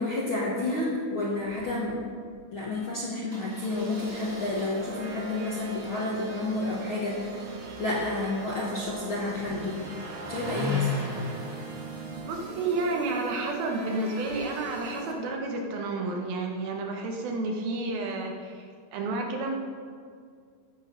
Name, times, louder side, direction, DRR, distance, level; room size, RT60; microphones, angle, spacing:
voice 1, 0.0-2.0 2.5-7.4 7.8-9.8 10.3-10.9, left 2 dB, 65° left, -5 dB, 1.3 m, -30 dB
Engine starting, 1.4-1.6 1.9-2.0 2.2-2.4 3.3-14.4, left 4 dB, 30° right, 1.8 m, -39 dB
sound 1, 3.7-15.1, right 4 dB, 65° right, 2.8 m, -41 dB
voice 2, 12.1-19.5, right 3 dB, 80° right, 1 dB, 3.1 m, -31 dB
15.0 x 6.4 x 5.3 m, 2.1 s
omnidirectional pair, 4.2 m